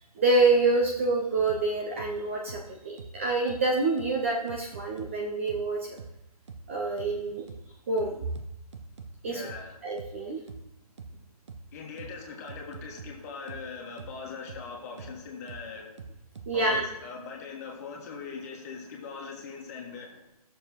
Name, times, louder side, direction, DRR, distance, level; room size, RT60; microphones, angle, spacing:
voice 1, 0.2-6.0 6.7-7.5 7.9-8.3 9.2-9.5 9.8-10.4 16.5-16.9, right 3 dB, 20° right, -1 dB, 0.6 m, -27 dB
sound 1, 1.5-1.6 2.0-2.1 2.5-2.6 3.0-3.1 3.5-3.6 4.0-4.1 4.5-5.1 5.5-5.6 6.0-6.1 6.5-6.6 7.0-7.1 7.5-7.6 8.0-9.1 9.5-9.6 10.0-10.1 10.5-10.6 11.0-11.1 11.5-11.6 12.0-12.1 12.5-13.1 13.5-13.6 14.0-14.1 14.5-14.6 15.0-15.1 15.5-15.6 16.0-16.9, right 4 dB, 45° right, 0.9 m, -43 dB
voice 2, 9.2-9.8 11.7-16.0 16.5-20.4, left 5 dB, 25° left, -1 dB, 1.7 m, -41 dB
16.0 x 6.8 x 3.0 m, 0.85 s
hypercardioid pair, 160°, 20 cm